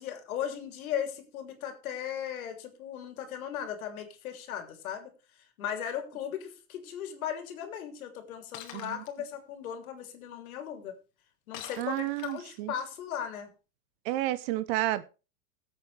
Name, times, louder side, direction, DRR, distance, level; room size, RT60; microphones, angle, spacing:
voice 1, 0.0-5.1 5.6-10.9 11.5-13.5, left 9 dB, 75° left, 3.1 m, -37 dB
Shatter, 8.5-9.1 11.5-12.6, left 10 dB, 50° left, 2.4 m, -45 dB
voice 2, 11.8-12.7 14.0-15.0, right 16 dB, 45° right, 0.8 m, -31 dB
16.5 x 8.3 x 3.3 m
supercardioid pair, 135°, 42 cm